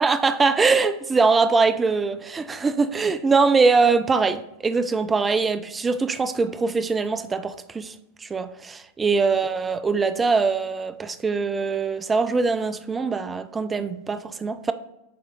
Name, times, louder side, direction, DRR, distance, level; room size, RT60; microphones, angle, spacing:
voice 1, 0.0-7.9 8.2-14.7, right 4 dB, 15° right, 12 dB, 0.4 m, -22 dB
8.5 x 3.1 x 3.7 m, 0.88 s
figure-of-eight pair, 90°, 0 cm